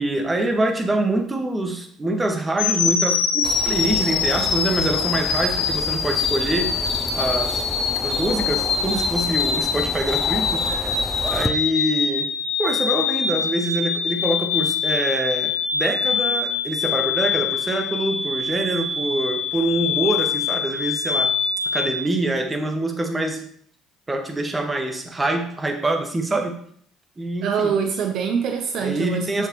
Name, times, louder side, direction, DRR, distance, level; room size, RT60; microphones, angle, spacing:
voice 1, 0.0-6.8 7.1-7.6 8.0-10.9 11.3-12.3 12.6-21.3 21.7-23.5 24.1-26.5 27.2-27.7 28.8-29.5, right 1 dB, 20° right, 3 dB, 1.6 m, -25 dB
sound 1, 2.6-22.0, left 6 dB, 85° left, 0.9 m, -24 dB
sound 2, 3.4-11.5, equal, 5° left, 0.6 m, -31 dB
voice 2, 27.4-29.5, right 7 dB, 65° right, 5 dB, 0.7 m, -24 dB
7.4 x 6.6 x 3.1 m, 0.62 s
hypercardioid pair, 60°, 0 cm